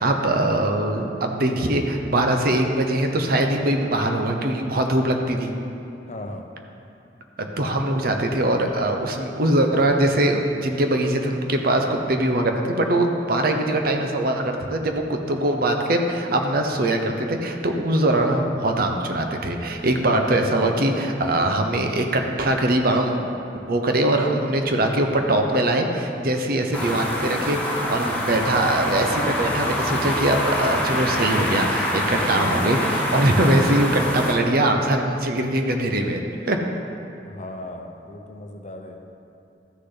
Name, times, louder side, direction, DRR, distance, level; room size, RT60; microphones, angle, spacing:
voice 1, 0.0-5.5 7.4-23.3 23.7-36.2 36.5-36.6, right 1 dB, 55° right, 4 dB, 0.8 m, -22 dB
voice 2, 6.1-6.5 37.2-39.0, left 1 dB, 40° left, 3 dB, 0.8 m, -37 dB
sound 1, 26.7-34.3, equal, 10° left, 1.5 m, -25 dB
13.5 x 6.6 x 3.9 m, 2.6 s
head